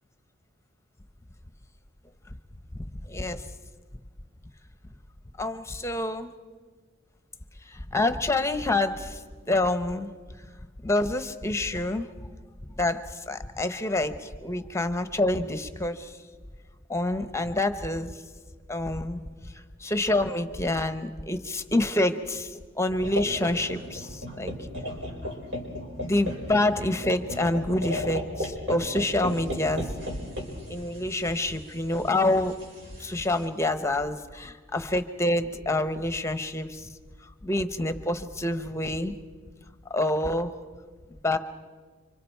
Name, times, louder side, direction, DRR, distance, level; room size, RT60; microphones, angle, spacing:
voice 1, 3.0-3.4 5.4-6.3 7.7-9.2 9.5-10.1 10.8-12.1 12.8-16.2 16.9-18.2 18.7-24.5 26.0-29.9 30.7-32.5 33.0-36.9 37.2-39.1 39.9-40.6 41.2-41.4, left 2 dB, 15° left, 10 dB, 0.9 m, -27 dB
sound 1, 23.0-33.4, left 1 dB, 70° right, 5.2 m, -36 dB
29.0 x 25.5 x 4.6 m, 1.5 s
head